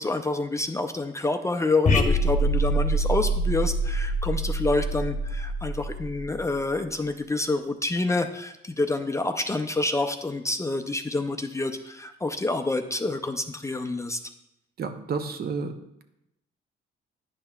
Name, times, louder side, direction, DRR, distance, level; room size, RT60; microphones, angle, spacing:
voice 1, 0.0-14.2, left 2 dB, 15° left, 5 dB, 0.4 m, -28 dB
sound 1, 1.8-6.5, right 1 dB, 35° left, 0.8 m, -25 dB
voice 2, 14.8-16.0, right 5 dB, 50° right, 7 dB, 0.6 m, -31 dB
9.7 x 5.4 x 2.3 m, 0.84 s
cardioid pair, 90°, 20 cm